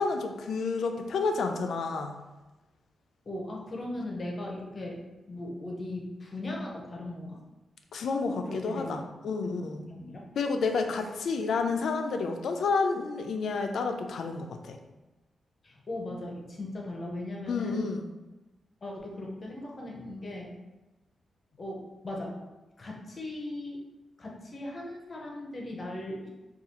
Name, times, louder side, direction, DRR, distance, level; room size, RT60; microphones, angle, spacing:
voice 1, 0.0-2.1 7.9-9.8 10.4-14.8 17.5-18.1, left 4 dB, 65° left, 5 dB, 0.4 m, -30 dB
voice 2, 3.3-5.0 5.3-7.4 8.3-9.0 9.7-10.3 15.6-17.9 18.8-20.6 21.6-22.4 22.8-23.8 24.2-26.3, left 1 dB, 30° left, -1 dB, 0.7 m, -38 dB
4.8 x 2.3 x 2.8 m, 1.1 s
wide cardioid pair, 155°, 0 cm